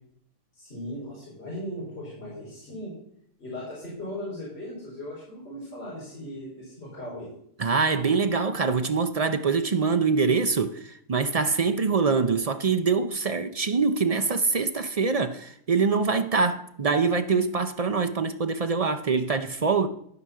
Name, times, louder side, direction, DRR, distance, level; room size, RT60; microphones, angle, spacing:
voice 1, 0.5-3.0 3.4-7.4, left 1 dB, 50° left, 4.9 m, -38 dB
voice 2, 7.6-19.9, right 4 dB, 45° right, 0.4 m, -24 dB
12.5 x 5.6 x 6.3 m
omnidirectional pair, 1.4 m